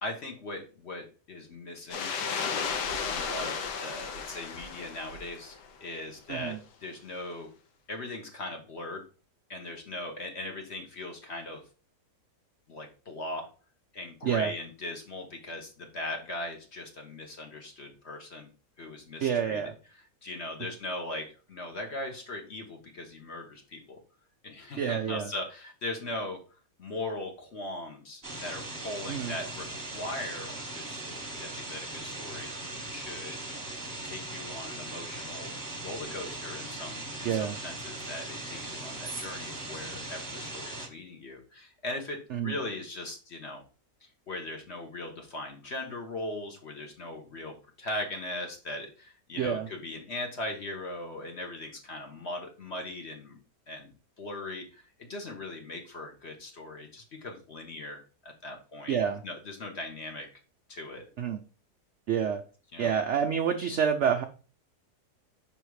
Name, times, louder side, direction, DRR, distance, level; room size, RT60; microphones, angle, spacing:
voice 1, 0.0-2.1 3.0-7.5 7.9-9.0 9.5-11.6 12.7-13.5 13.9-18.5 18.8-19.6 20.2-24.0 24.4-26.4 26.8-33.4 34.0-35.5 35.8-43.6 44.3-53.4 53.7-59.0 59.2-60.3 60.7-61.1 62.7-62.9, left 2 dB, 45° left, 3 dB, 1.3 m, -39 dB
sound 1, 1.9-5.7, left 6 dB, 85° left, 1.5 m, -34 dB
voice 2, 19.2-19.7 24.8-25.3 29.1-29.3 37.2-37.6 42.3-42.5 49.4-49.7 58.9-59.2 61.2-61.4 62.1-62.4 62.8-64.2, right 8 dB, 70° right, 6 dB, 0.7 m, -28 dB
sound 2, 28.2-40.9, right 2 dB, 15° right, 0.9 m, -39 dB
5.7 x 3.5 x 4.7 m, 0.36 s
omnidirectional pair, 1.8 m